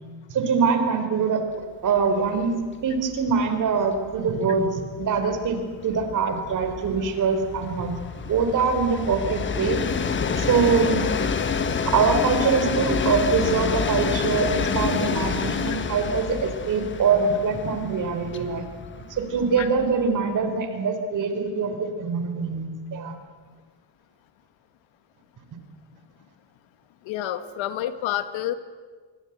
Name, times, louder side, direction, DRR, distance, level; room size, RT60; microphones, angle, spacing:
voice 1, 0.3-1.4 1.8-2.5 2.8-7.9 8.2-9.8 10.4-11.1 11.9-18.6 19.1-23.1, right 5 dB, 40° right, 7 dB, 3.8 m, -23 dB
Train, 2.0-2.1 2.4-2.5 2.8-20.2, left 5 dB, 25° left, 1.4 m, -28 dB
voice 2, 27.1-28.5, left 12 dB, 75° left, 11 dB, 1.8 m, -28 dB
27.0 x 23.5 x 8.1 m, 1.5 s
cardioid pair, 175°, 47 cm